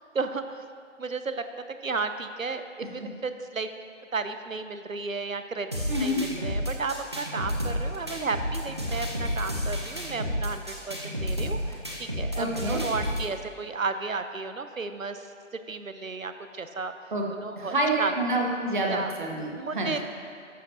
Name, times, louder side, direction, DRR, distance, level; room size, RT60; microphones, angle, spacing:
voice 1, 0.1-0.6 1.0-1.4 1.8-3.7 4.1-5.7 6.0-15.3 15.7-16.9 17.4-18.1 18.9-19.1 19.5-20.1, right 4 dB, 90° right, 9 dB, 0.8 m, -33 dB
sound 1, 5.7-13.3, equal, 20° right, 0.6 m, -31 dB
voice 2, 5.9-6.2 12.4-12.8 17.1-17.2 17.6-20.0, right 1 dB, 40° right, 0 dB, 1.2 m, -28 dB
13.0 x 8.6 x 2.8 m, 2.3 s
figure-of-eight pair, 150°, 39 cm